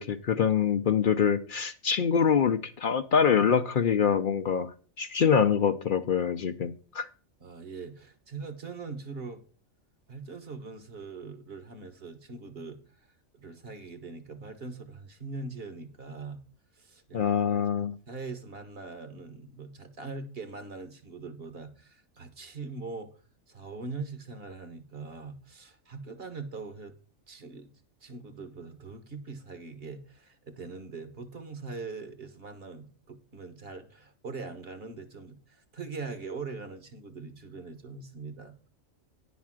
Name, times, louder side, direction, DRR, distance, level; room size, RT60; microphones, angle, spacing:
voice 1, 0.0-4.7 5.0-7.1 17.1-18.0, left 7 dB, 55° left, 10 dB, 0.6 m, -25 dB
voice 2, 7.4-9.4 10.1-13.1 13.3-16.4 16.7-17.6 18.1-23.2 23.5-26.9 27.3-27.7 28.0-38.6, right 4 dB, 45° right, 8 dB, 1.4 m, -42 dB
10.5 x 4.1 x 7.3 m, 0.40 s
omnidirectional pair, 1.4 m